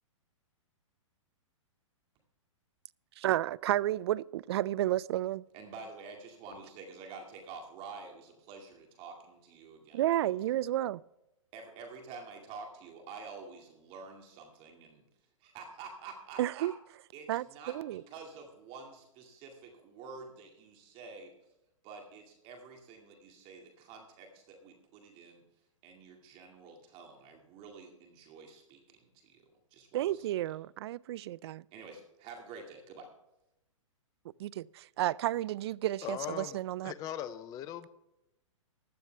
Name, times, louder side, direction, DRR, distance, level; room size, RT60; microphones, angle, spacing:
voice 1, 3.2-5.4 9.9-11.0 16.4-16.7 17.3-18.0 29.9-31.6 34.4-36.9, right 14 dB, 55° right, 0.4 m, -32 dB
voice 2, 5.5-10.4 11.5-15.0 15.4-16.7 17.1-21.4 21.8-25.4 25.8-30.6 31.7-33.1, right 4 dB, 35° right, 2.2 m, -49 dB
voice 3, 36.0-36.6 36.8-37.9, left 11 dB, 20° left, 0.5 m, -39 dB
15.5 x 11.5 x 3.4 m
hypercardioid pair, 135°, 17 cm